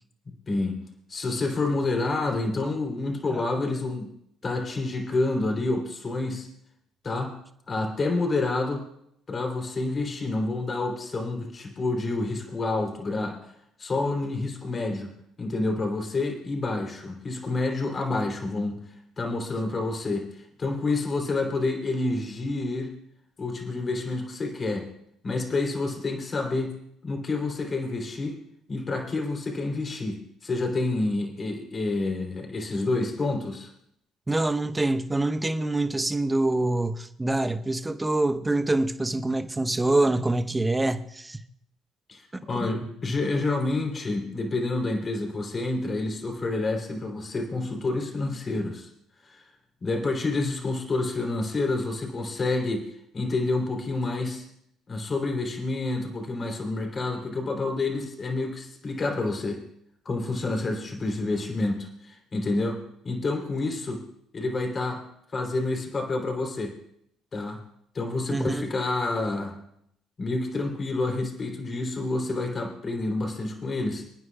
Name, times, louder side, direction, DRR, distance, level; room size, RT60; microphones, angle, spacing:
voice 1, 0.5-0.8 1.1-4.1 4.4-6.5 7.0-7.4 7.7-8.9 9.3-13.5 13.8-15.1 15.4-18.8 19.2-22.9 23.4-24.9 25.2-26.7 27.0-28.4 28.7-33.7 42.1-48.9 49.2-49.4 49.8-52.8 53.1-54.5 54.9-59.6 60.0-64.0 64.3-65.0 65.3-66.7 67.3-67.6 67.9-69.6 70.2-74.1, left 2 dB, 40° left, 2 dB, 3.3 m, -28 dB
voice 2, 34.3-41.4 42.6-42.7 68.3-68.7, right 2 dB, 15° right, 9 dB, 0.9 m, -25 dB
27.0 x 9.6 x 2.4 m, 0.71 s
hypercardioid pair, 55°, 0 cm